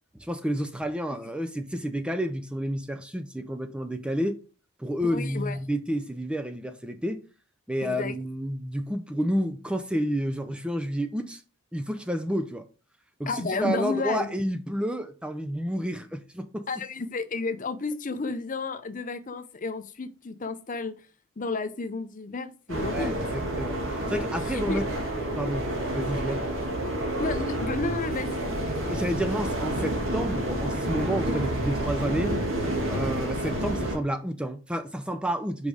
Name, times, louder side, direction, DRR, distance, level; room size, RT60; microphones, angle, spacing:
voice 1, 0.1-4.4 4.8-7.3 7.7-11.4 11.7-12.7 13.2-16.7 22.8-24.8 25.4-26.4 28.9-32.4 32.9-35.7, equal, 5° right, 0.4 m, -30 dB
voice 2, 5.1-5.6 7.8-8.1 13.3-14.3 16.7-20.9 21.4-23.5 24.0-24.8 27.2-28.7, left 3 dB, 40° left, 0.6 m, -32 dB
sound 1, 22.7-34.0, right 1 dB, 65° right, 1.9 m, -29 dB
5.2 x 5.1 x 4.9 m
head